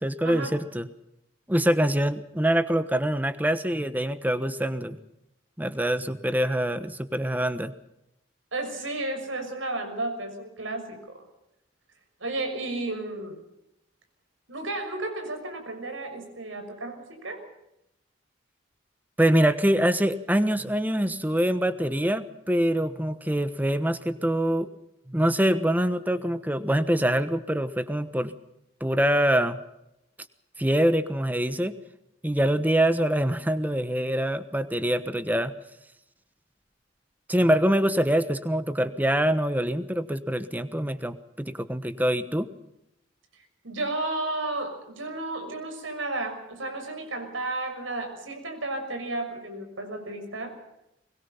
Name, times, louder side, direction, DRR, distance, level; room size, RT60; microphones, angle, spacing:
voice 1, 0.0-0.9 1.5-5.0 5.6-7.7 19.2-24.7 25.1-28.3 28.8-29.6 30.6-31.7 32.2-35.5 37.3-42.5, right 1 dB, 10° right, 12 dB, 1.2 m, -24 dB
voice 2, 8.5-11.2 12.2-13.4 14.5-17.4 43.4-50.6, right 2 dB, 85° right, 6 dB, 6.2 m, -33 dB
23.5 x 21.5 x 5.7 m, 0.85 s
head